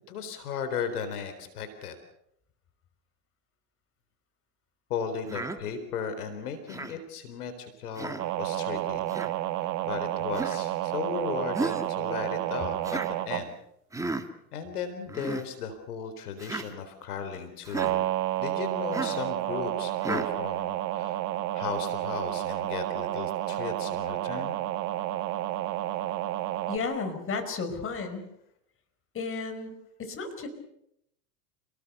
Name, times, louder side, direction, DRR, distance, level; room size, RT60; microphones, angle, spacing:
voice 1, 0.1-2.0 4.9-9.1 9.6-13.5 14.5-18.0 18.4-21.2 21.5-24.6, left 6 dB, 75° left, 9 dB, 4.2 m, -36 dB
Human voice, 5.3-5.6 6.7-7.0 8.0-8.3 9.1-9.3 10.3-10.6 11.5-11.9 12.8-13.1 13.9-14.3 15.1-15.4 16.4-16.7 17.6-17.9 18.9-19.2 20.0-20.3, right 2 dB, 5° right, 2.0 m, -33 dB
sound 1, 8.2-13.5 17.7-26.8, right 13 dB, 40° right, 1.7 m, -30 dB
voice 2, 26.7-28.3 29.1-29.7 30.0-30.5, left 4 dB, 30° left, 8 dB, 5.3 m, -33 dB
29.5 x 19.5 x 6.8 m, 0.77 s
hypercardioid pair, 105°, 45 cm